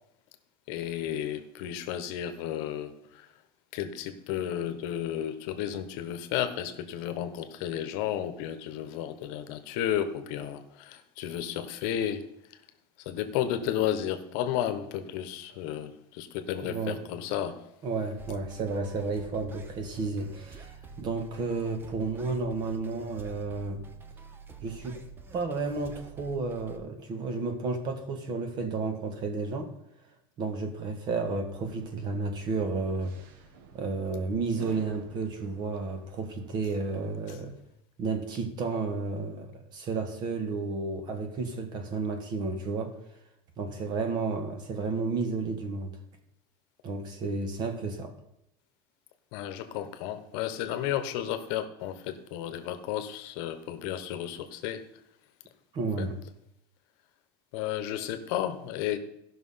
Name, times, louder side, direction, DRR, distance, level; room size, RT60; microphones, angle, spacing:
voice 1, 0.7-3.3 3.7-12.3 13.0-17.6 49.3-54.8 56.0-56.1 57.5-59.0, left 10 dB, 65° left, 9 dB, 1.1 m, -33 dB
voice 2, 16.6-17.0 17.8-23.8 24.6-25.0 25.3-29.7 30.4-33.1 33.7-37.5 38.0-42.9 43.6-46.0 46.8-48.1 55.7-56.2, right 4 dB, 35° right, 7 dB, 1.6 m, -32 dB
sound 1, 18.2-26.8, right 5 dB, 20° right, 0.7 m, -48 dB
sound 2, 31.5-36.7, right 5 dB, 70° right, 1.4 m, -51 dB
14.0 x 6.0 x 5.7 m, 0.80 s
supercardioid pair, 155°, 12 cm